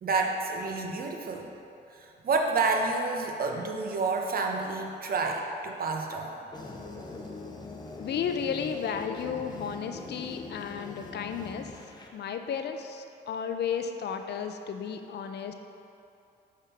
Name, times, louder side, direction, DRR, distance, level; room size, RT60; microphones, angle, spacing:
voice 1, 0.0-1.5 2.2-6.3, right 3 dB, 50° right, 2 dB, 0.8 m, -29 dB
sound 1, 6.5-12.1, left 3 dB, 20° left, 0.7 m, -42 dB
voice 2, 8.0-11.8 12.1-15.5, left 7 dB, 60° left, 6 dB, 0.5 m, -33 dB
6.4 x 3.7 x 5.5 m, 2.7 s
cardioid pair, 90°, 20 cm